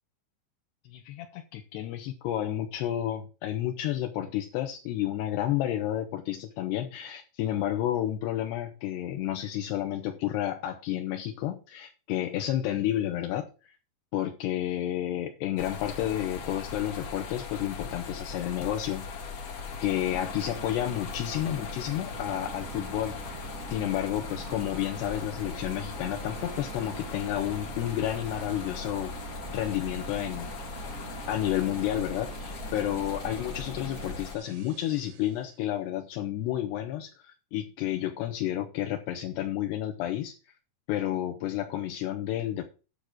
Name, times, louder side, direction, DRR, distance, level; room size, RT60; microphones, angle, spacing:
voice 1, 0.8-13.7 14.1-19.1 19.8-29.1 29.5-30.5 31.3-40.3 40.9-42.7, left 12 dB, 80° left, 3.1 m, -31 dB
sound 1, 15.6-34.4, left 5 dB, 60° left, 1.6 m, -39 dB
sound 2, 19.9-35.6, right 14 dB, 80° right, 2.5 m, -45 dB
9.8 x 6.7 x 6.1 m
omnidirectional pair, 4.9 m